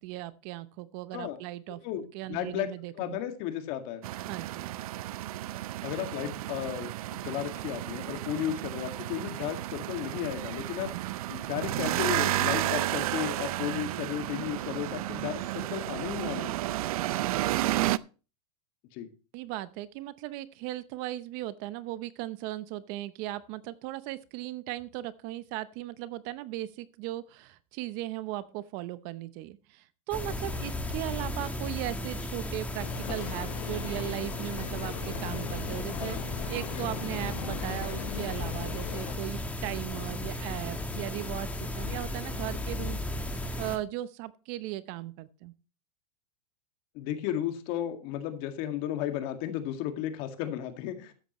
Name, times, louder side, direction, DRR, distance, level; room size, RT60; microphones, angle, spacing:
voice 1, 0.0-1.8 2.1-3.2 4.3-4.7 19.3-43.0 43.3-45.5, right 15 dB, 45° right, 15 dB, 0.8 m, -37 dB
voice 2, 2.3-2.7 2.9-4.1 5.8-10.9 11.3-16.6 18.9-19.1 46.9-51.1, left 11 dB, 50° left, 6 dB, 2.1 m, -34 dB
sound 1, 4.0-18.0, right 15 dB, 70° right, 0.5 m, -32 dB
sound 2, 30.1-43.8, left 1 dB, 5° left, 1.4 m, -35 dB
sound 3, 32.8-39.2, left 10 dB, 90° left, 1.0 m, -40 dB
13.0 x 9.9 x 3.1 m, 0.34 s
supercardioid pair, 135°, 19 cm